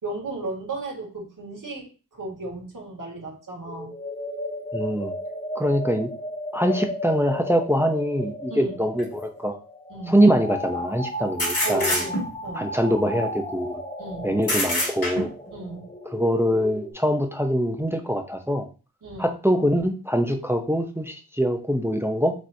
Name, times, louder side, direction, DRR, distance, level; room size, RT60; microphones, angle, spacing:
voice 1, 0.0-4.0 8.5-8.7 9.9-10.2 11.6-12.7 14.0-14.3 15.5-15.8 19.0-19.3, right 2 dB, 60° right, -2 dB, 1.9 m, -35 dB
sound 1, 3.6-16.9, left 1 dB, 25° left, 1.6 m, -35 dB
voice 2, 4.7-5.1 5.5-6.1 6.5-9.5 10.1-12.0 12.5-13.8 14.2-15.3 16.1-18.7 19.2-22.3, equal, 5° right, 4 dB, 0.6 m, -23 dB
sound 2, 9.0-9.1 11.4-12.5 14.4-15.5, left 1 dB, 75° left, 2.2 m, -25 dB
6.2 x 3.0 x 2.7 m, 0.34 s
wide cardioid pair, 80°, 36 cm